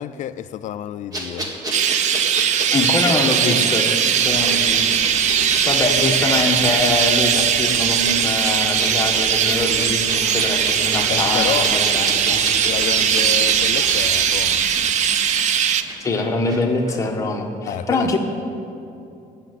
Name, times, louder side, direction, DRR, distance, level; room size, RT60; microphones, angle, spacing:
voice 1, 0.0-1.6 11.1-11.7 12.7-15.1 17.7-18.2, left 11 dB, 55° left, 0.4 m, -29 dB
sound 1, 1.1-16.6 16.9-17.0, right 1 dB, 25° right, 1.7 m, -31 dB
Chirp tweet, 1.7-15.8, right 8 dB, 50° right, 0.6 m, -19 dB
voice 2, 2.7-3.9 4.2-12.4 16.0-18.2, left 3 dB, 20° left, 1.3 m, -24 dB
sound 2, 4.2-14.8, right 2 dB, 75° right, 3.1 m, -35 dB
15.5 x 6.8 x 9.5 m
cardioid pair, 170°, 15 cm